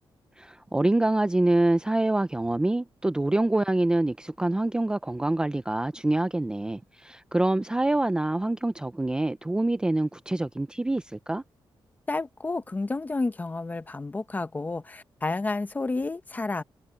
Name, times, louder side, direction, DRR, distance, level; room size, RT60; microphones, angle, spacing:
voice 1, 0.4-11.4, right 2 dB, 10° right, 0.4 m, -25 dB
voice 2, 12.1-16.6, left 3 dB, 20° left, 0.8 m, -30 dB
wide cardioid pair, 175°, 9 cm